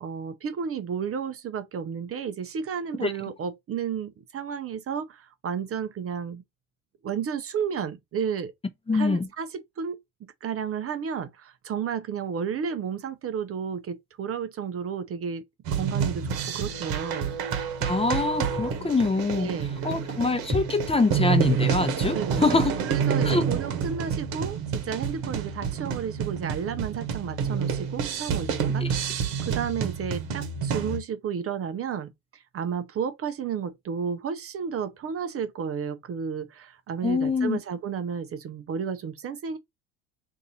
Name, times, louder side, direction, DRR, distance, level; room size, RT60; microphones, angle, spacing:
voice 1, 0.0-6.4 7.0-8.5 8.9-10.0 10.4-17.4 19.3-19.9 22.1-22.5 22.8-39.6, right 7 dB, 35° right, 0.6 m, -32 dB
voice 2, 8.9-9.3 17.8-19.5 19.8-22.7 23.2-23.4 28.8-28.9 37.0-37.6, left 3 dB, 15° left, 0.7 m, -24 dB
sound 1, 15.6-31.0, right 7 dB, 65° right, 1.1 m, -28 dB
2.7 x 2.6 x 4.1 m
hypercardioid pair, 65°, 39 cm